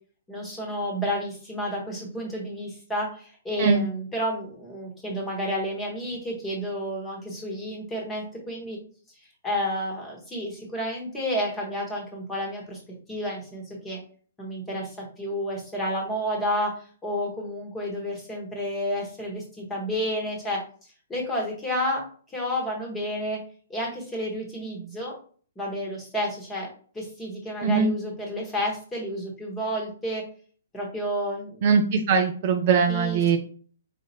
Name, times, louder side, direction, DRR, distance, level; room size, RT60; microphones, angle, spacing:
voice 1, 0.3-8.8 9.4-12.8 13.1-14.0 14.4-20.6 21.1-22.0 22.3-23.4 23.7-25.1 25.5-26.7 26.9-30.2 30.7-31.6 32.9-33.4, equal, 10° left, -2 dB, 1.4 m, -30 dB
voice 2, 31.6-33.4, right 5 dB, 40° right, 4 dB, 0.6 m, -21 dB
5.1 x 2.8 x 2.9 m, 0.43 s
figure-of-eight pair, 120°, 0 cm